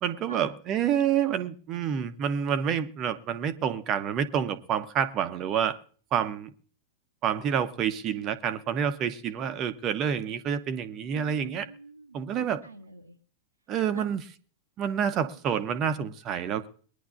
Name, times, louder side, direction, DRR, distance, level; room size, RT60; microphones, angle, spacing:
voice 1, 0.0-5.8 6.1-6.5 7.2-11.7 12.1-12.6 13.7-14.2 14.8-16.7, right 8 dB, 35° right, 1.2 m, -28 dB
voice 2, 11.1-13.2 13.9-14.1, right 3 dB, 85° right, 1.2 m, -44 dB
22.5 x 10.5 x 2.7 m
figure-of-eight pair, 90°, 0 cm